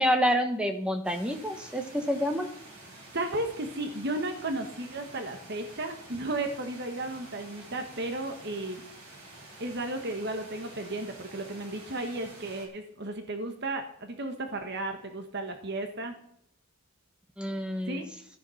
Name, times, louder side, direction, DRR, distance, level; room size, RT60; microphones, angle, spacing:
voice 1, 0.0-2.5 17.4-18.0, equal, 5° right, 5 dB, 1.4 m, -28 dB
sound 1, 1.0-12.7, right 2 dB, 80° right, 5.6 m, -49 dB
voice 2, 3.1-8.8 9.6-16.1 17.8-18.1, right 2 dB, 50° right, 5 dB, 1.4 m, -34 dB
13.5 x 9.3 x 5.7 m, 0.66 s
head